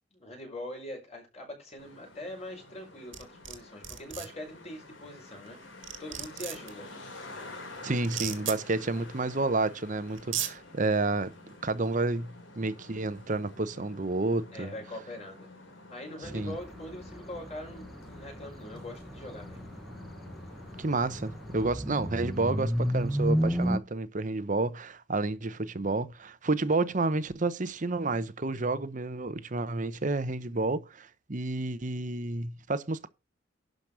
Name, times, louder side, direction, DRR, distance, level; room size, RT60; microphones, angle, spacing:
voice 1, 0.1-6.9 8.8-8.9 14.5-15.5 15.9-19.7, left 1 dB, 35° left, 5.3 m, -43 dB
Traffic noise roadway noise, 1.8-21.7, left 2 dB, 80° left, 3.3 m, -49 dB
sound 1, 3.1-3.6 3.8-4.3 5.5-5.6 5.8-6.7 8.0-8.6 9.7-9.8 10.2-10.5, right 11 dB, 90° right, 2.0 m, -34 dB
voice 2, 7.8-11.3 11.6-14.7 16.3-16.5 20.8-33.1, right 2 dB, 40° right, 0.9 m, -30 dB
sound 2, 16.2-23.8, equal, ahead, 1.0 m, -33 dB
12.0 x 5.2 x 6.2 m
head